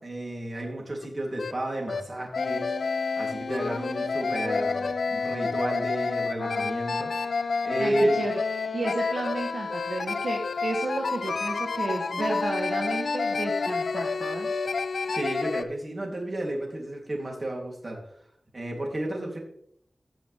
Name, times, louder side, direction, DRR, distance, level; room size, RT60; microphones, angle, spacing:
voice 1, 0.0-2.7 3.0-8.2 15.1-18.0 18.5-19.4, right 1 dB, 45° right, -1 dB, 3.4 m, -32 dB
sound 1, 1.0-1.1 1.4-1.5 1.9-2.0 2.3-15.6, left 4 dB, 85° left, 0.5 m, -29 dB
voice 2, 7.8-8.4 8.7-14.5, right 2 dB, 75° right, 0 dB, 1.5 m, -32 dB
16.0 x 6.1 x 3.6 m, 0.70 s
wide cardioid pair, 65°, 0 cm